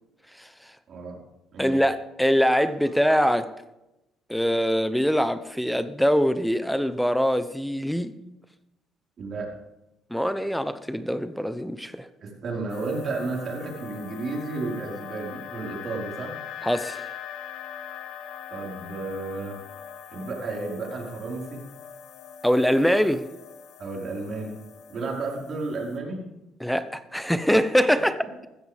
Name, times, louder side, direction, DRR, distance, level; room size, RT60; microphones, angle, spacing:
voice 1, 0.9-1.2 1.5-1.8 9.2-9.5 12.2-16.3 18.5-19.5 20.1-21.6 23.8-24.5 24.9-26.2, right 3 dB, 50° right, 5.0 m, -32 dB
voice 2, 1.6-3.5 4.3-8.1 10.1-12.1 16.6-17.0 22.4-23.3 26.6-28.2, equal, ahead, 0.9 m, -23 dB
sound 1, 12.7-26.0, left 9 dB, 75° left, 1.3 m, -42 dB
15.0 x 14.0 x 3.6 m
cardioid pair, 85°, 0 cm